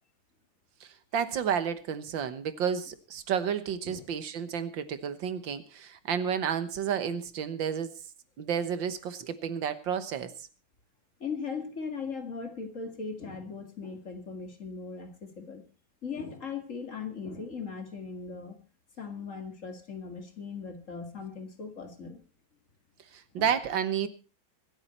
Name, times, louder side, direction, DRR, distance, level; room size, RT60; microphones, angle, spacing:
voice 1, 0.8-7.9 8.4-10.5 23.1-24.1, right 8 dB, 85° right, 1.9 m, -31 dB
voice 2, 11.2-15.6 16.0-18.6 19.0-22.2 23.3-23.5, left 5 dB, 45° left, 2.3 m, -39 dB
25.5 x 8.8 x 4.3 m
omnidirectional pair, 2.0 m